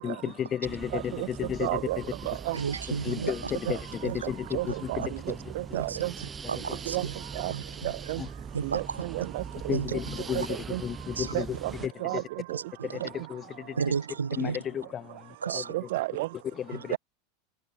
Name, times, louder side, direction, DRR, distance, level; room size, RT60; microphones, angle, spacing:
voice 1, 0.0-2.4 2.9-5.5 6.5-6.8 8.2-8.3 9.7-12.3 12.8-13.9 14.4-15.9 16.5-17.0, left 9 dB, 35° left, 1.9 m, -34 dB
sound 1, 0.6-11.9, right 6 dB, 25° right, 4.8 m, -41 dB
voice 2, 0.9-1.3 1.6-2.0 2.3-2.6 4.5-5.0 5.5-6.1 6.9-7.1 7.4-7.5 8.1-8.2 8.6-9.7 10.7-10.8 11.3-11.4 12.0-12.2 12.5-12.6 15.7-16.3, right 19 dB, 60° right, 1.4 m, -31 dB
voice 3, 2.5-3.3 5.7-6.0 6.5-7.1 7.5-7.9 8.5-9.0 9.7-9.9 11.2-11.3 12.5-12.6 13.8-14.6 15.4-15.7 16.9-17.0, right 6 dB, 85° right, 0.8 m, -32 dB
figure-of-eight pair, 85°, 0 cm